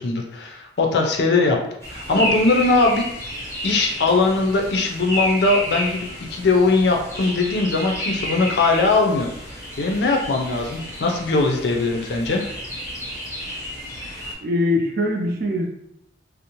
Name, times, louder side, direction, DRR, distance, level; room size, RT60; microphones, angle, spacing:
voice 1, 0.0-1.6 1.9-3.0 3.6-9.3 9.8-12.5, left 3 dB, 60° left, 2 dB, 0.4 m, -20 dB
sound 1, 1.8-14.3, equal, 15° left, 0.6 m, -31 dB
voice 2, 14.4-15.7, left 1 dB, 50° right, 1 dB, 0.5 m, -22 dB
2.5 x 2.0 x 2.9 m, 0.76 s
head